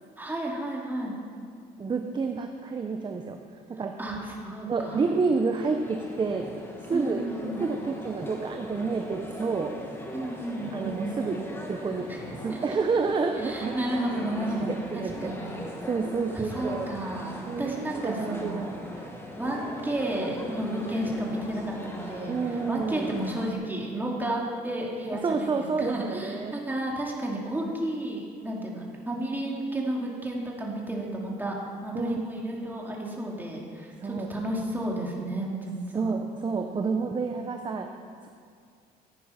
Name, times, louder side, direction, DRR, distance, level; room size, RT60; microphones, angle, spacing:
voice 1, 0.2-1.2 4.0-5.0 6.9-7.6 10.1-11.2 12.1-12.8 13.4-15.6 16.3-18.8 19.4-31.5 31.8-36.1, right 1 dB, 10° right, -2 dB, 2.7 m, -32 dB
voice 2, 1.8-3.4 3.7-3.9 4.7-6.5 6.9-7.2 7.6-9.7 10.7-11.4 11.7-12.1 12.4-13.7 14.6-16.9 17.5-18.7 22.3-23.1 25.2-26.6 31.9-32.2 34.0-34.3 35.9-37.9, right 4 dB, 25° right, 4 dB, 0.9 m, -29 dB
sound 1, 4.7-23.5, left 1 dB, 15° left, 1.8 m, -40 dB
15.0 x 9.1 x 5.9 m, 2.2 s
cardioid pair, 110°, 17 cm